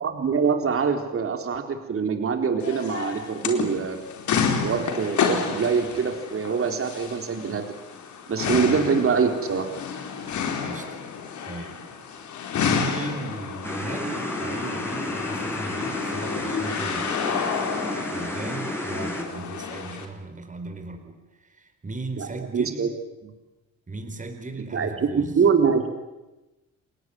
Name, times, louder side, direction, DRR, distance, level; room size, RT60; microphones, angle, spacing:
voice 1, 0.0-4.0 4.6-7.7 8.3-9.7 22.2-22.9 23.2-23.3 24.7-25.9, right 6 dB, 45° right, 5 dB, 3.9 m, -24 dB
sound 1, 2.6-20.1, left 6 dB, 75° left, 4.3 m, -30 dB
voice 2, 8.5-9.0 10.6-11.0 11.4-11.8 12.5-17.3 18.1-22.9 23.9-25.4, right 2 dB, 25° right, 6 dB, 4.4 m, -37 dB
sound 2, 13.6-19.2, left 1 dB, 10° left, 7.8 m, -31 dB
30.0 x 20.0 x 9.5 m, 1.0 s
cardioid pair, 90°, 30 cm